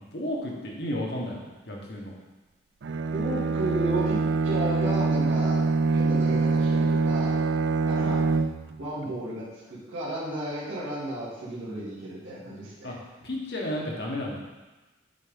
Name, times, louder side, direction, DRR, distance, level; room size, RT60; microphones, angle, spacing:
voice 1, 0.1-1.4 1.7-2.1 12.8-13.0 13.2-14.4, left 1 dB, 55° left, -2 dB, 1.5 m, -32 dB
Bowed string instrument, 2.8-8.8, right 3 dB, 70° right, 0.3 m, -24 dB
voice 2, 3.1-5.6 5.9-7.4 7.8-8.2 8.8-12.9, right 1 dB, 85° right, -10 dB, 2.5 m, -33 dB
8.6 x 4.4 x 5.3 m, 1.2 s
head